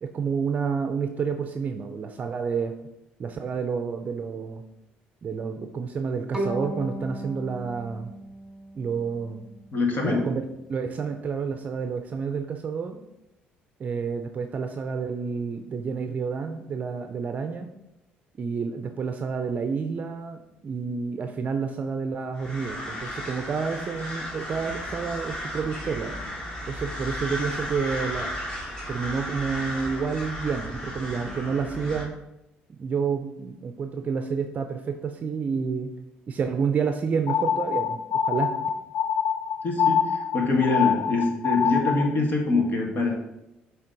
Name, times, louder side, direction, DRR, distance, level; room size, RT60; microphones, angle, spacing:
voice 1, 0.0-2.7 3.2-4.6 5.2-8.1 8.8-9.5 10.0-13.0 13.8-17.7 18.4-26.2 26.7-28.3 28.9-32.2 32.7-35.9 36.3-38.5, right 5 dB, 40° right, 7 dB, 0.6 m, -29 dB
Bowed string instrument, 6.3-9.4, right 1 dB, 10° right, 2.1 m, -35 dB
voice 2, 9.7-10.2 39.6-43.1, left 3 dB, 50° left, 1 dB, 1.9 m, -24 dB
sound 1, 22.3-32.0, equal, 20° left, 2.1 m, -34 dB
sound 2, 37.3-42.2, left 8 dB, 65° left, 0.6 m, -25 dB
7.2 x 3.4 x 5.2 m, 0.89 s
supercardioid pair, 85°, 4 cm